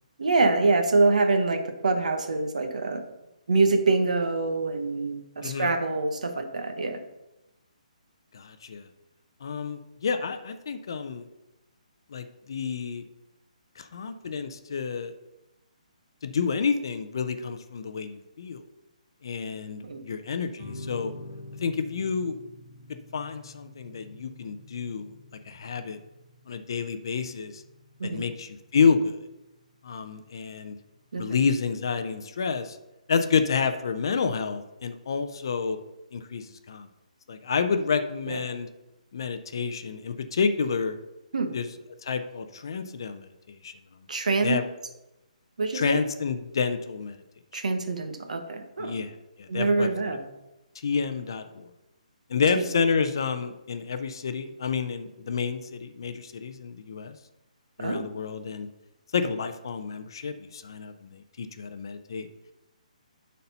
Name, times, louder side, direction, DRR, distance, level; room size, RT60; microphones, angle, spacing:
voice 1, 0.2-3.0 3.5-7.0 19.8-20.0 28.0-28.2 31.1-31.4 38.3-38.4 41.3-41.5 44.1-44.6 45.6-46.0 47.5-48.9 49.5-50.2 52.5-52.7 57.8-58.1, right 3 dB, 65° right, 6 dB, 1.1 m, -25 dB
voice 2, 5.4-5.7 8.3-8.9 9.4-11.3 12.1-13.0 13.8-15.1 16.2-18.6 19.2-21.1 21.6-22.4 23.1-25.1 25.5-26.0 26.5-27.6 28.0-29.2 29.8-30.7 31.2-32.8 33.1-35.8 36.1-36.9 37.3-38.7 39.1-41.0 41.5-41.7 42.0-43.7 44.4-44.6 45.7-47.2 47.5-47.6 48.8-49.1 49.4-50.1 50.8-51.7 52.3-57.1 57.8-58.7 59.1-62.3, left 5 dB, 35° left, 9 dB, 0.4 m, -29 dB
sound 1, 20.6-31.6, left 1 dB, 35° right, 2.2 m, -47 dB
8.2 x 4.2 x 5.5 m, 0.96 s
hypercardioid pair, 180°, 4 cm